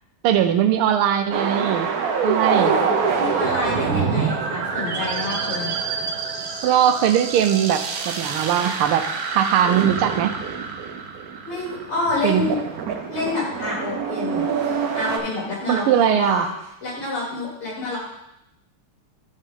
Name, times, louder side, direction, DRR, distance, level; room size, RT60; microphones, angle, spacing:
voice 1, 0.2-1.9 2.2-2.8 6.6-10.3 12.2-12.5 15.7-16.5, right 10 dB, 80° right, 9 dB, 1.5 m, -20 dB
sound 1, 1.3-15.2, right 5 dB, 65° right, 0.9 m, -26 dB
voice 2, 2.5-2.9 3.2-5.7 11.5-12.6 13.1-16.5 16.8-18.0, left 2 dB, 75° left, -6 dB, 4.1 m, -28 dB
11.0 x 5.4 x 3.7 m, 0.83 s
omnidirectional pair, 2.4 m